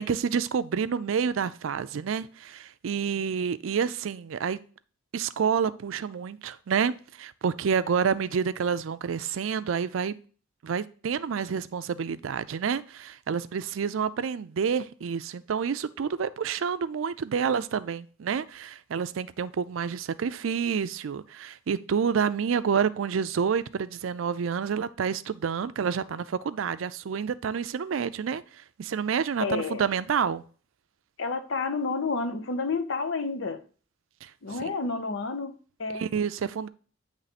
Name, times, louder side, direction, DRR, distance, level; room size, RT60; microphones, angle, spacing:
voice 1, 0.0-4.6 5.1-10.2 10.6-28.4 28.8-30.4 34.2-34.3 35.9-36.7, right 6 dB, 85° right, 0.4 m, -28 dB
voice 2, 29.4-29.8 31.2-33.6 34.4-36.0, left 4 dB, 75° left, 0.7 m, -30 dB
9.0 x 3.2 x 4.1 m
head